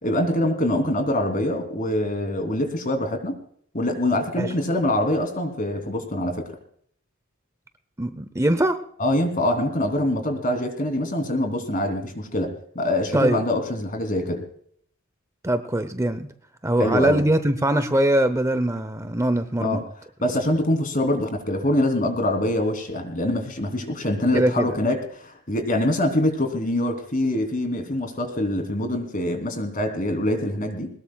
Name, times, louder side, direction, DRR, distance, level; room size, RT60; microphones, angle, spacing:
voice 1, 0.0-3.3 3.7-6.4 9.0-14.4 16.8-17.2 19.6-19.8 20.2-30.9, left 1 dB, 40° left, 6 dB, 3.2 m, -24 dB
voice 2, 8.0-8.8 13.1-13.4 15.4-16.3 16.6-19.8 24.3-24.7, right 1 dB, 15° right, 11 dB, 0.8 m, -22 dB
22.0 x 20.0 x 2.3 m, 0.63 s
head